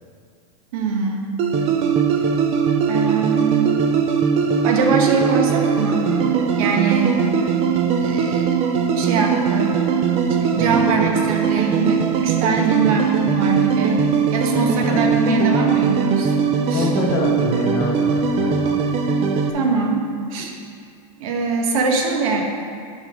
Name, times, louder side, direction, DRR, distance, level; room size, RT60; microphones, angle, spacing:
voice 1, 0.7-1.4 2.9-3.7 4.6-6.1 6.6-7.2 8.0-8.5 9.0-9.7 10.4-14.0 14.3-16.4 16.7-16.9 19.5-20.5 21.2-22.4, right 4 dB, 65° right, 2 dB, 1.2 m, -22 dB
sound 1, 1.4-19.5, right 6 dB, 30° right, 0.5 m, -20 dB
voice 2, 10.5-11.1 14.9-15.2 16.7-18.8, left 2 dB, 45° left, 0 dB, 1.2 m, -26 dB
9.1 x 5.6 x 3.6 m, 2.3 s
supercardioid pair, 140°, 20 cm